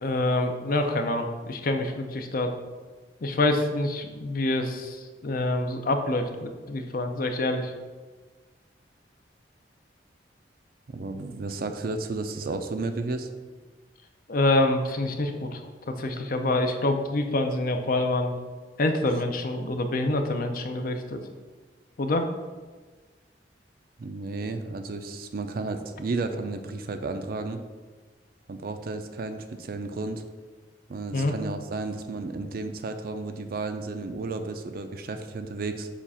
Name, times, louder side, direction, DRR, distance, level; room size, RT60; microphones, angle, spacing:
voice 1, 0.0-2.5 3.2-7.7 14.3-18.3 18.8-21.2 22.0-22.3 31.1-31.3, left 2 dB, 55° left, 6 dB, 0.6 m, -26 dB
voice 2, 10.9-13.3 24.0-27.6 28.5-30.2 30.9-35.9, right 3 dB, 55° right, 7 dB, 0.4 m, -33 dB
7.2 x 2.4 x 5.5 m, 1.4 s
head